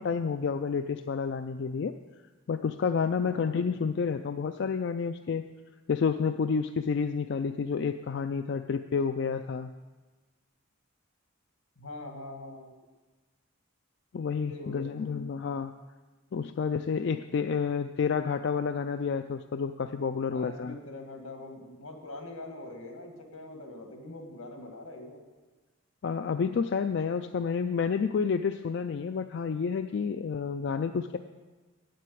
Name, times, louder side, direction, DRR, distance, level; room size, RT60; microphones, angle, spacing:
voice 1, 0.0-1.9 2.5-5.4 5.9-9.7 14.1-15.7 16.3-20.8 26.0-31.2, left 5 dB, 55° left, 8 dB, 0.3 m, -29 dB
voice 2, 3.2-3.6 11.8-12.7 14.5-14.9 20.3-25.2, left 2 dB, 85° left, 3 dB, 1.9 m, -43 dB
8.4 x 7.7 x 8.5 m, 1.3 s
head